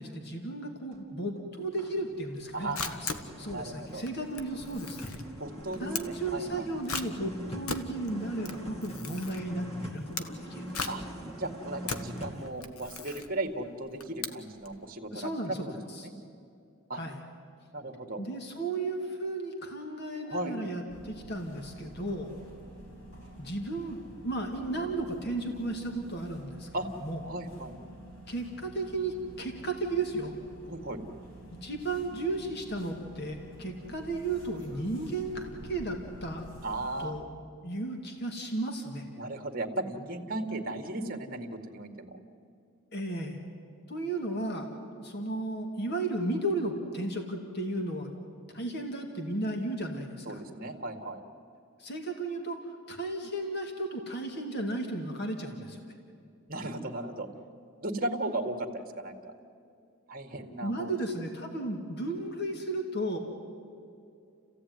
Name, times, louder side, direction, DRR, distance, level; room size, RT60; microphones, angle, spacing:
voice 1, 0.0-3.1 3.4-5.0 5.8-10.9 15.1-16.1 16.9-17.2 18.2-22.3 23.4-26.7 27.0-27.2 28.3-30.3 31.6-36.4 37.0-37.2 37.6-39.1 42.9-43.4 43.9-44.7 44.9-48.1 48.5-50.4 51.8-55.8 60.6-63.2, right 2 dB, 50° left, 3 dB, 2.3 m, -34 dB
sound 1, 0.9-1.1 1.5-12.5, equal, 25° left, 2.6 m, -43 dB
Camera, 2.4-14.8, left 5 dB, 90° left, 1.4 m, -40 dB
voice 2, 3.5-4.0 5.4-6.7 10.9-11.0 11.4-15.3 15.6-16.1 16.9-17.0 17.7-18.2 20.2-20.6 26.7-26.9 27.2-27.8 30.7-31.0 36.6-37.2 39.1-42.2 50.3-51.2 56.5-57.3 57.8-59.3 60.1-60.9, right 2 dB, 40° right, 7 dB, 2.0 m, -36 dB
sound 2, 20.9-37.0, right 1 dB, 65° left, 5.6 m, -49 dB
30.0 x 16.0 x 9.5 m, 2.5 s
head